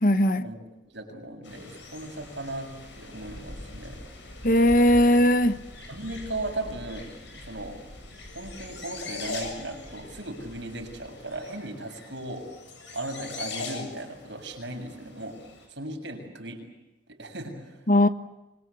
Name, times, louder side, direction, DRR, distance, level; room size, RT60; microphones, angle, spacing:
voice 1, 0.0-0.5 4.4-5.6 17.9-18.1, left 1 dB, 45° left, 1.2 m, -19 dB
voice 2, 0.8-4.0 5.9-7.1 7.4-7.8 8.3-12.5 12.9-15.4 15.7-16.6 17.1-17.8, right 1 dB, 65° right, 7.2 m, -37 dB
sound 1, 1.4-15.7, left 3 dB, 70° left, 7.7 m, -41 dB
26.0 x 23.0 x 8.4 m
head